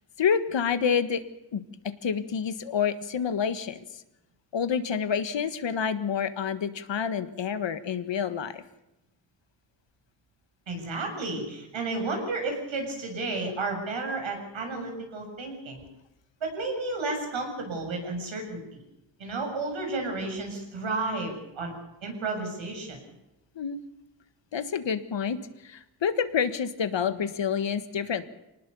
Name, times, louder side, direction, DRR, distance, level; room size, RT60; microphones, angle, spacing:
voice 1, 0.2-1.2 1.5-1.6 2.0-4.0 4.5-8.6 23.5-23.8 24.5-28.3, left 7 dB, 70° left, 11 dB, 1.6 m, -28 dB
voice 2, 10.7-15.8 16.4-18.8 19.2-21.7 22.0-23.0, right 3 dB, 90° right, 2 dB, 7.4 m, -32 dB
25.0 x 19.0 x 7.1 m, 0.93 s
wide cardioid pair, 110°, 45 cm